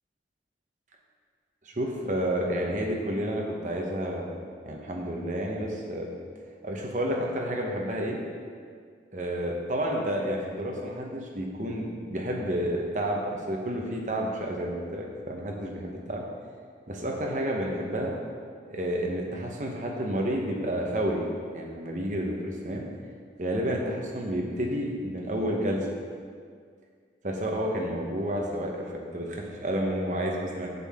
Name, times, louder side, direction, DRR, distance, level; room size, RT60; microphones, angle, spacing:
voice 1, 1.6-6.1 6.6-8.2 9.1-16.3 16.9-18.1 18.7-21.2 21.5-22.9 23.4-25.9 27.2-30.7, equal, 45° right, 0 dB, 1.0 m, -30 dB
8.0 x 7.5 x 3.6 m, 2.1 s
head